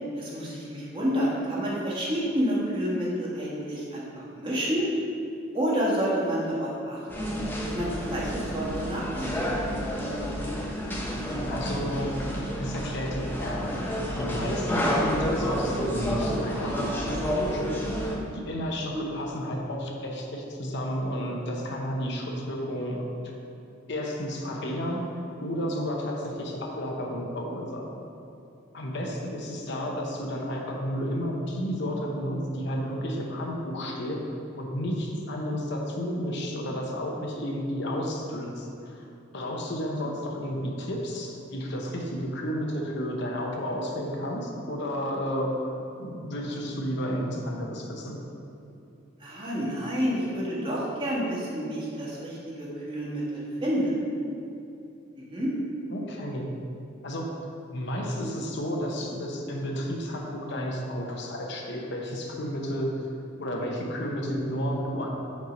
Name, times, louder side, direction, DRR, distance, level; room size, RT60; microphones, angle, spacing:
voice 1, 0.1-4.9 5.5-7.3 7.7-9.7 18.9-19.0 40.0-40.1 49.2-53.9 55.3-55.5, equal, 25° right, -6 dB, 1.5 m, -29 dB
sound 1, 7.1-18.2, equal, 10° left, 0.7 m, -30 dB
voice 2, 11.5-12.1 12.5-13.7 14.1-17.7 18.3-23.0 23.9-25.0 25.4-27.8 28.7-34.2 34.6-39.1 39.3-45.6 46.0-48.2 55.9-56.5 57.0-57.3 57.7-63.1 63.4-65.1, equal, 60° left, -1 dB, 0.8 m, -32 dB
5.3 x 4.6 x 5.2 m, 2.7 s
head